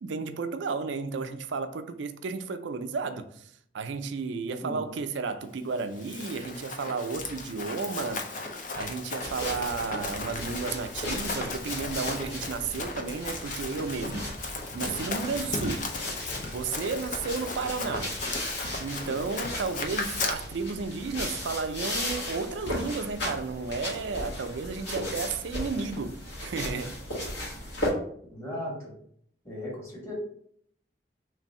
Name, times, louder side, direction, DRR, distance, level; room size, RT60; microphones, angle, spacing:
voice 1, 0.0-8.2 8.7-14.3 14.7-15.9 16.5-18.2 18.8-27.0, right 4 dB, 80° right, 0.4 m, -33 dB
Run, 5.8-20.3, left 3 dB, 45° left, 0.5 m, -36 dB
sound 1, 9.2-27.9, left 1 dB, 75° left, 1.5 m, -36 dB
voice 2, 28.3-28.9 29.4-30.1, equal, 15° left, 1.3 m, -37 dB
3.2 x 2.6 x 4.2 m
head